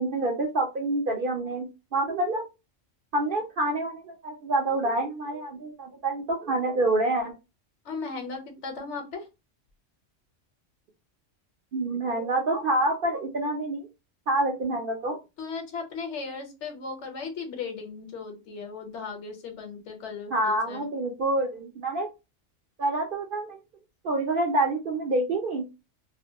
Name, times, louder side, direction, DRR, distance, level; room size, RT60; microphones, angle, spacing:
voice 1, 0.0-2.4 3.1-7.3 11.7-13.9 14.3-15.2 20.3-22.1 22.8-23.6 24.0-25.6, right 2 dB, 60° right, 1 dB, 0.6 m, -27 dB
voice 2, 7.8-9.3 15.4-20.9, left 4 dB, 70° left, 4 dB, 1.0 m, -36 dB
2.4 x 2.2 x 2.7 m, 0.26 s
omnidirectional pair, 1.3 m